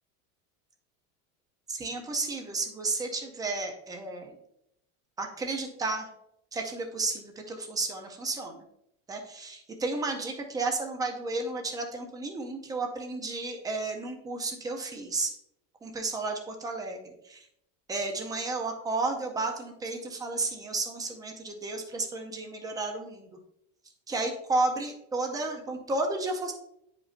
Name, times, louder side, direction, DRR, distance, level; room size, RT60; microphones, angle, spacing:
voice 1, 1.7-4.4 5.2-6.1 6.5-8.6 9.1-15.3 15.8-17.5 17.9-23.3 24.1-26.5, right 3 dB, 10° right, 3 dB, 0.4 m, -32 dB
9.3 x 5.1 x 2.4 m, 0.76 s
cardioid pair, 165°, 44 cm